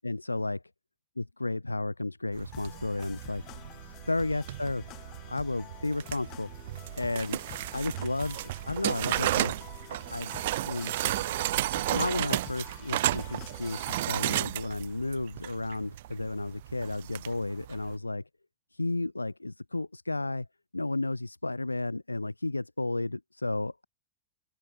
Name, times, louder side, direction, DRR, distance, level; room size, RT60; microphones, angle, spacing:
voice 1, 0.0-0.6 1.2-3.4 4.1-4.8 5.3-6.5 7.0-7.4 7.7-9.5 10.1-10.3 10.6-11.1 11.9-18.2 18.7-20.5 20.7-23.9, left 2 dB, 85° left, 0.4 m, -32 dB
sound 1, 2.3-17.9, right 15 dB, 55° right, 0.6 m, -33 dB
sound 2, 2.5-14.3, left 19 dB, 40° left, 1.2 m, -49 dB
open air
figure-of-eight pair, 90°, 0 cm